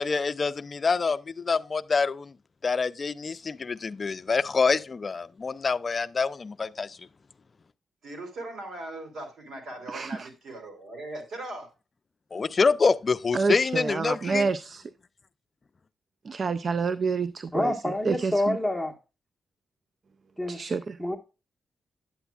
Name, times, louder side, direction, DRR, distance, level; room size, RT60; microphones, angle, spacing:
voice 1, 0.0-2.3 2.6-7.0 12.3-14.5, left 4 dB, 45° left, 0.4 m, -26 dB
voice 2, 8.0-11.7, right 2 dB, 75° right, 2.9 m, -39 dB
voice 3, 9.9-10.3 13.3-14.8 16.2-18.6 20.5-21.0, right 4 dB, 50° right, 0.4 m, -28 dB
voice 4, 17.5-18.9 20.4-20.6 21.0-21.2, left 1 dB, 5° right, 1.4 m, -27 dB
9.3 x 8.0 x 2.4 m
cardioid pair, 80°, 0 cm